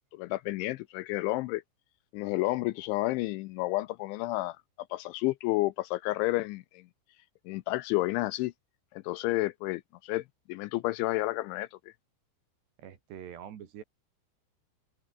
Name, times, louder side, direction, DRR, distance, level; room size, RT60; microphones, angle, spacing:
voice 1, 0.0-1.6 2.1-4.6 4.9-6.9 7.5-8.5 8.9-11.9, left 19 dB, 80° left, 2.9 m, -31 dB
voice 2, 12.8-13.8, right 9 dB, 60° right, 4.3 m, -44 dB
open air
omnidirectional pair, 5.7 m